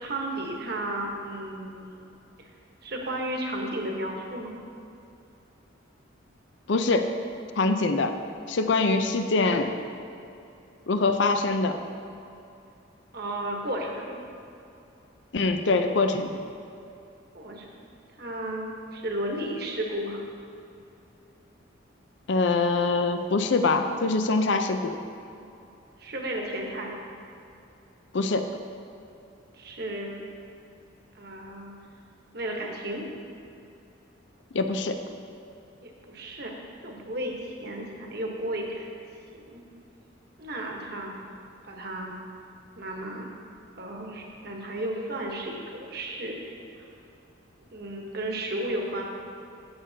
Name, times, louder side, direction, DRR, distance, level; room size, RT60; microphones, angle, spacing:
voice 1, 0.0-1.9 2.4-2.5 2.8-4.5 13.1-14.2 17.3-17.8 18.2-20.2 26.0-27.0 29.5-30.2 31.1-31.7 32.3-33.1 35.8-36.6 36.8-38.9 39.5-39.6 40.4-41.2 41.6-42.2 42.8-43.3 43.8-46.8 47.7-49.0, right 1 dB, 50° right, 0 dB, 1.1 m, -33 dB
voice 2, 6.7-7.1 7.6-8.1 8.5-9.7 10.9-11.8 15.3-16.4 22.3-24.9 28.1-28.4 34.5-35.0, left 3 dB, 65° left, 7 dB, 0.5 m, -24 dB
16.0 x 6.7 x 2.8 m, 2.7 s
head